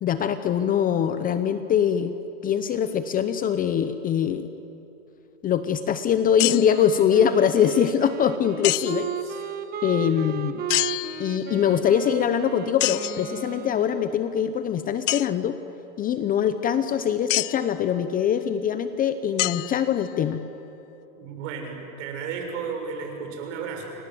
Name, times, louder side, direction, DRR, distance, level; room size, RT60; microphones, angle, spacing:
voice 1, 0.0-2.1 2.4-4.5 5.4-9.1 9.8-10.6 11.2-15.6 16.0-20.4, left 9 dB, 20° left, 11 dB, 0.7 m, -23 dB
sound 1, 6.4-6.9 8.6-9.2 10.7-11.6 12.8-13.3 15.1-15.3 17.3-17.7 19.4-20.2, left 19 dB, 55° left, 0.6 m, -27 dB
Wind instrument woodwind instrument, 6.6-14.3, right 8 dB, 20° right, 1.2 m, -35 dB
voice 2, 21.2-23.9, right 5 dB, 55° right, 3 dB, 6.9 m, -34 dB
29.5 x 24.5 x 7.8 m, 3.0 s
supercardioid pair, 140°, 43 cm